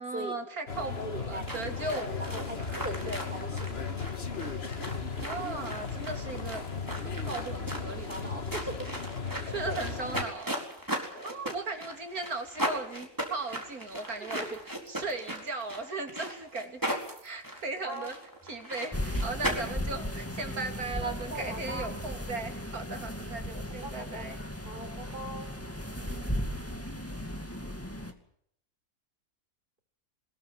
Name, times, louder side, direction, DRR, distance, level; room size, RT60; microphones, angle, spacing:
voice 1, 0.0-3.2 5.1-6.6 6.9-8.6 9.5-10.5 11.2-14.6 14.9-16.8 17.2-18.2 18.4-24.4 25.9-26.3, right 3 dB, 75° right, 5 dB, 3.4 m, -37 dB
sound 1, 0.7-10.3, left 5 dB, 45° left, 1.9 m, -36 dB
voice 2, 1.0-1.5 1.9-3.9 7.9-8.8 9.3-9.8 11.1-11.4 14.2-14.6 17.8-18.1 21.0-21.9 23.8-24.3 24.7-25.5, right 1 dB, 40° right, 5 dB, 4.3 m, -40 dB
sound 2, 1.4-19.5, equal, 15° right, 4.3 m, -38 dB
sound 3, 18.9-28.1, equal, 10° left, 2.1 m, -36 dB
22.5 x 21.0 x 7.6 m, 0.69 s
omnidirectional pair, 1.5 m